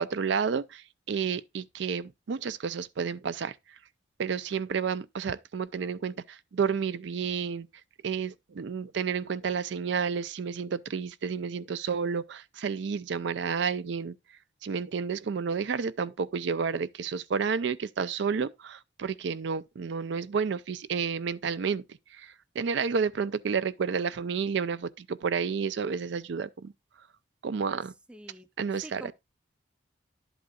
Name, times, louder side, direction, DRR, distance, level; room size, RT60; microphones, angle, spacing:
voice 1, 0.0-3.6 4.2-7.7 8.0-14.2 14.6-21.8 22.1-26.7 27.4-27.9 28.6-29.1, right 6 dB, 65° right, 0.4 m, -31 dB
voice 2, 28.1-29.1, right 1 dB, 5° right, 0.5 m, -47 dB
11.5 x 8.0 x 2.3 m
head